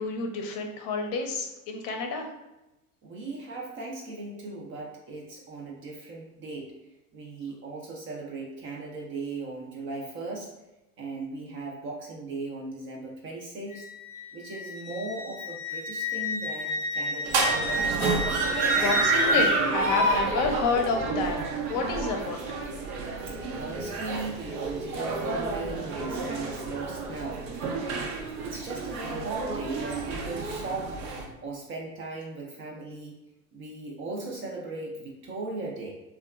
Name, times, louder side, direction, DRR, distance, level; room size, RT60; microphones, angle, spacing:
voice 1, 0.0-2.3 18.7-21.4 21.7-22.6, left 4 dB, 45° left, 2 dB, 0.6 m, -29 dB
voice 2, 3.0-6.7 7.1-10.5 11.0-13.8 14.3-17.6 23.6-27.6 28.4-31.0 31.4-33.2 33.5-35.9, right 3 dB, 30° right, -1 dB, 0.4 m, -37 dB
Wind instrument woodwind instrument, 13.7-19.5, left 1 dB, 90° left, 0.6 m, -32 dB
sound 1, 17.2-31.3, right 3 dB, 80° right, 0.6 m, -29 dB
2.8 x 2.3 x 2.3 m, 0.99 s
hypercardioid pair, 90°, 45 cm